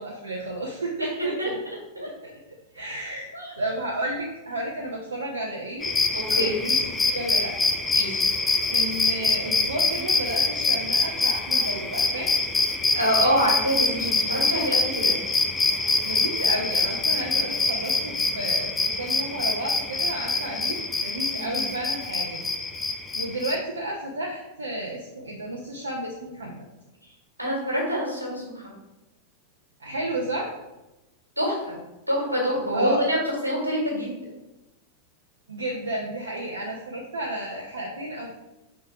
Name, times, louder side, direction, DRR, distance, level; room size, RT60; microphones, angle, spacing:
voice 1, 0.0-1.6 2.7-3.3 3.6-5.9 6.3-7.5 8.7-12.3 16.0-22.4 23.1-26.7 29.8-30.5 32.7-33.0 35.5-38.4, right 1 dB, 70° right, -2 dB, 0.8 m, -32 dB
sound 1, 5.8-23.5, left 3 dB, 15° left, 0.6 m, -25 dB
voice 2, 6.1-6.6 7.9-8.2 12.9-15.2 21.3-21.6 27.4-28.7 31.4-31.8 32.1-34.2, equal, 90° right, -2 dB, 1.8 m, -26 dB
5.3 x 3.9 x 4.6 m, 0.99 s
figure-of-eight pair, 90°, 0 cm